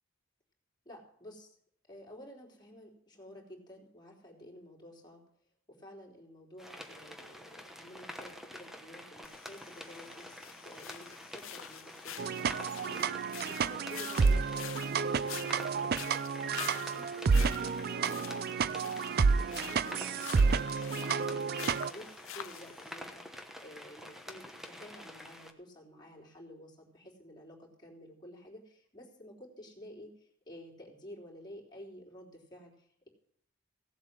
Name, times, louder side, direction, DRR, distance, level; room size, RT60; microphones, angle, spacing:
voice 1, 0.9-1.5 1.8-5.2 5.7-33.1, left 1 dB, 20° left, -3 dB, 3.6 m, -52 dB
sound 1, 6.6-25.5, equal, ahead, 1.1 m, -48 dB
sound 2, 9.2-22.9, left 11 dB, 90° left, 0.7 m, -47 dB
sound 3, 12.2-21.9, right 5 dB, 50° right, 0.4 m, -30 dB
16.5 x 7.9 x 6.2 m, 0.69 s
head